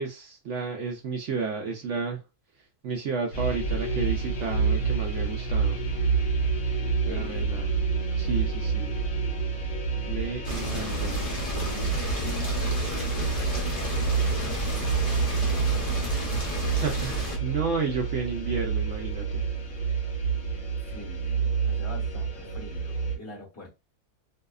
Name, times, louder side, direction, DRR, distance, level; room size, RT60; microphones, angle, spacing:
voice 1, 0.0-2.2 2.8-5.8 7.0-7.7 8.2-8.9 10.1-11.2 16.8-19.4, right 5 dB, 65° right, 0.7 m, -32 dB
sound 1, 3.3-23.2, right 5 dB, 60° left, 1.1 m, -28 dB
voice 2, 7.0-7.6 11.7-16.4 20.8-23.7, left 3 dB, 10° left, 0.9 m, -44 dB
sound 2, 10.4-17.4, equal, 35° left, 0.6 m, -32 dB
2.7 x 2.1 x 2.3 m
omnidirectional pair, 1.7 m